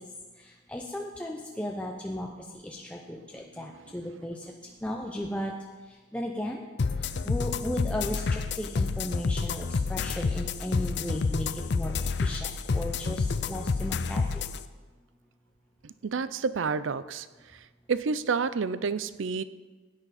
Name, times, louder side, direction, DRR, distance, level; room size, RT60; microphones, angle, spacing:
voice 1, 0.7-2.3 2.6-4.4 4.8-5.5 6.1-6.6 7.2-11.5 11.7-11.9 12.2-14.2, left 1 dB, 5° left, 0 dB, 0.7 m, -35 dB
sound 1, 6.8-14.6, left 4 dB, 60° left, 0.5 m, -29 dB
voice 2, 15.8-17.3 17.9-19.4, right 5 dB, 80° right, 15 dB, 0.5 m, -29 dB
16.0 x 9.6 x 4.2 m, 1.3 s
head